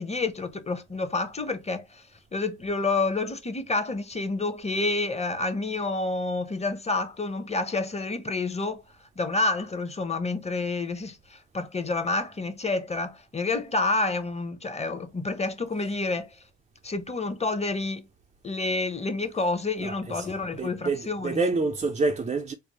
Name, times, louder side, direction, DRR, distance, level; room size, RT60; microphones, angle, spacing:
voice 1, 0.0-2.0 2.3-8.8 9.2-16.3 16.8-18.0 18.4-21.4, left 3 dB, 20° left, 0.8 m, -29 dB
voice 2, 19.8-22.5, right 3 dB, 25° right, 0.4 m, -28 dB
4.5 x 2.0 x 2.9 m
cardioid pair, 90°, 30 cm